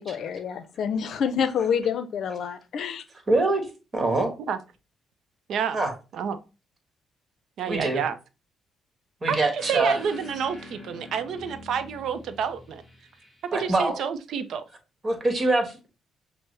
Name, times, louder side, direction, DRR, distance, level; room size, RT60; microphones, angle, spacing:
voice 1, 0.0-3.0, left 7 dB, 65° left, 0.5 m, -27 dB
voice 2, 3.3-3.7 3.9-4.3 5.7-5.9 7.7-8.0 9.2-10.0 13.5-14.0 15.0-15.9, right 2 dB, 30° right, 1.3 m, -24 dB
voice 3, 7.6-8.2 9.3-12.8 13.5-14.6, right 7 dB, 70° right, 0.5 m, -29 dB
sound 1, 9.6-13.8, left 2 dB, 5° left, 2.0 m, -46 dB
6.0 x 2.1 x 3.2 m
cardioid pair, 90°, 0 cm